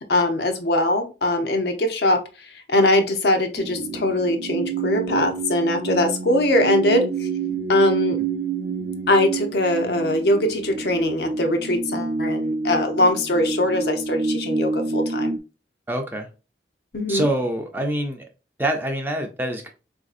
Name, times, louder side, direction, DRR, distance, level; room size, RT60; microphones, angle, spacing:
voice 1, 0.1-2.2 2.7-7.3 7.7-8.2 9.1-15.3 16.9-17.3, left 1 dB, 65° left, 0.6 m, -21 dB
sound 1, 3.6-15.4, right 4 dB, 65° right, 0.5 m, -28 dB
voice 2, 15.9-16.3 17.1-18.3 18.6-19.7, right 1 dB, 10° right, 0.4 m, -25 dB
3.9 x 2.6 x 2.4 m
head